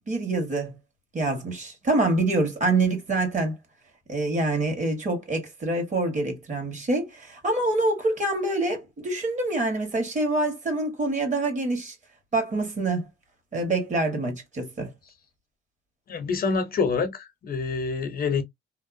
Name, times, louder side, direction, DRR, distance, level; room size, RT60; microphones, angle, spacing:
voice 1, 0.1-0.8 1.1-3.6 4.1-11.9 12.3-13.1 13.5-14.9, right 2 dB, 40° right, 1.4 m, -26 dB
voice 2, 16.1-18.4, left 5 dB, 50° left, 0.6 m, -26 dB
2.7 x 2.1 x 2.5 m
cardioid pair, 90°, 20 cm